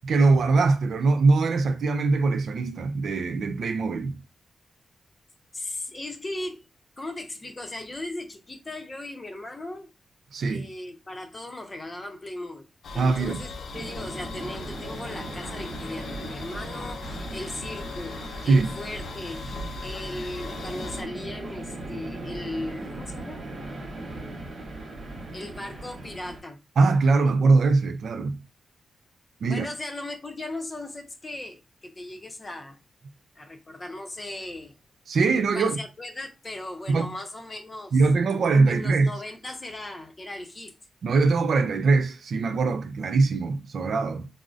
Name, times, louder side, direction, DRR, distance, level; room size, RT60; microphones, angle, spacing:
voice 1, 0.0-4.2 10.3-10.7 13.0-13.4 18.5-18.7 26.8-28.4 29.4-29.7 35.1-35.8 36.9-37.2 37.9-39.1 41.0-44.3, right 3 dB, 70° right, 0.4 m, -22 dB
voice 2, 5.5-6.7 7.0-9.9 10.4-12.7 12.9-23.4 25.3-26.6 29.5-32.8 33.4-34.8 35.5-38.0 38.7-40.7, left 1 dB, 30° left, 0.7 m, -37 dB
sound 1, 12.8-21.0, left 3 dB, 75° left, 0.4 m, -39 dB
sound 2, 13.7-26.4, right 2 dB, 55° right, 0.8 m, -38 dB
3.7 x 2.0 x 2.4 m
cardioid pair, 95°, 0 cm